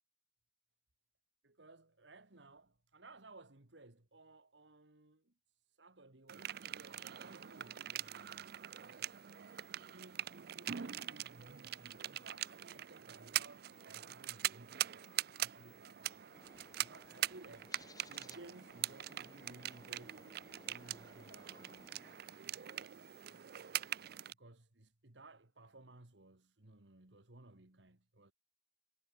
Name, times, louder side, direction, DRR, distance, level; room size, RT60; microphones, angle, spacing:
voice 1, 1.4-5.3 5.7-8.5 8.8-9.3 9.7-16.5 16.8-17.7 18.1-20.3 20.7-22.0 24.4-28.3, right 2 dB, 85° right, 2.2 m, -59 dB
sound 1, 6.3-24.3, right 12 dB, 60° right, 0.5 m, -43 dB
Bird, 16.3-22.2, left 2 dB, 20° left, 7.8 m, -61 dB
head